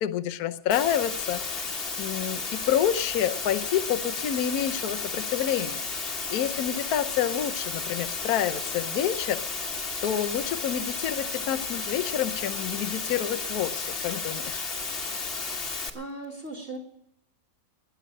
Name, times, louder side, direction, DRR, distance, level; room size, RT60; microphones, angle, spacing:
voice 1, 0.0-9.7 10.0-14.6, left 10 dB, 60° left, 9 dB, 1.1 m, -29 dB
Water, 0.7-15.9, left 4 dB, 35° left, 1.3 m, -33 dB
voice 2, 15.4-15.7 15.9-16.8, right 2 dB, 40° right, -2 dB, 2.2 m, -39 dB
20.0 x 7.1 x 8.6 m, 0.78 s
omnidirectional pair, 2.1 m